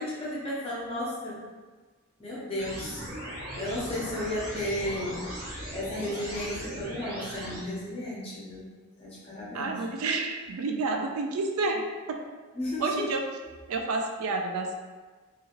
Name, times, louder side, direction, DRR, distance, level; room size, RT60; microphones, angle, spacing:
voice 1, 0.0-1.4 2.2-3.0 3.6-5.3 5.7-8.7 9.0-9.8 12.5-13.1, left 1 dB, 25° left, -7 dB, 0.7 m, -33 dB
sound 1, 2.6-7.6, equal, 40° right, 0.7 m, -38 dB
voice 2, 9.5-11.8 12.1-12.2 12.8-13.2 13.7-14.7, right 3 dB, 70° right, 3 dB, 0.3 m, -29 dB
2.7 x 2.4 x 2.9 m, 1.4 s
head